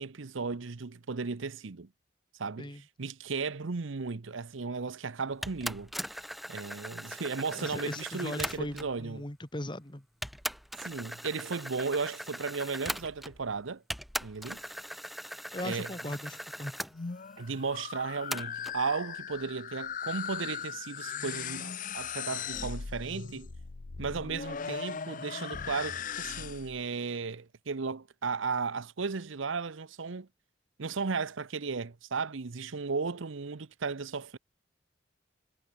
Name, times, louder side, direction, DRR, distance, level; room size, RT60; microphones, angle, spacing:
voice 1, 0.0-1.9 2.4-5.9 6.5-9.2 10.8-13.8 14.2-14.6 15.6-15.9 17.4-23.5 24.0-30.3 30.8-34.4, right 4 dB, 75° right, 0.8 m, -35 dB
sound 1, 5.4-9.0 9.7-9.8 10.2-13.5 13.9-16.9 18.3-18.8, equal, ahead, 1.4 m, -39 dB
voice 2, 7.5-10.1 15.5-16.8, left 1 dB, 25° left, 1.9 m, -38 dB
sound 2, 16.8-26.8, left 7 dB, 40° left, 0.6 m, -39 dB
head